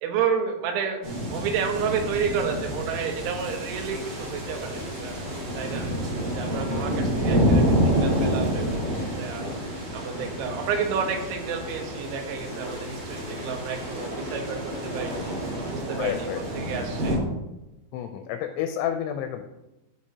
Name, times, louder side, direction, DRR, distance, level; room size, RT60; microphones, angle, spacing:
voice 1, 0.0-5.2 5.6-5.9 6.3-8.9 9.2-9.5 9.9-16.3 16.6-17.2, right 6 dB, 80° right, 3 dB, 3.3 m, -30 dB
sound 1, 1.0-17.2, equal, 45° right, 3.4 m, -29 dB
sound 2, 2.9-15.7, left 1 dB, 10° right, 1.6 m, -38 dB
voice 2, 16.0-16.4 17.9-19.4, left 10 dB, 85° left, 8 dB, 2.8 m, -29 dB
13.5 x 5.1 x 2.8 m, 0.97 s
omnidirectional pair, 5.5 m